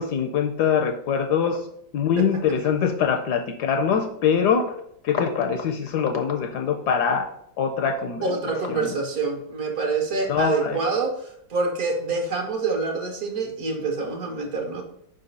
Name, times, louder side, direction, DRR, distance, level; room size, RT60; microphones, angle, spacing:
voice 1, 0.0-1.6 1.9-4.6 5.0-7.3 7.6-8.3 8.7-8.9 10.3-10.8, left 7 dB, 70° left, 5 dB, 1.0 m, -23 dB
voice 2, 2.2-2.6 8.2-14.8, right 4 dB, 55° right, 3 dB, 1.4 m, -26 dB
5.2 x 4.1 x 5.3 m, 0.72 s
omnidirectional pair, 2.1 m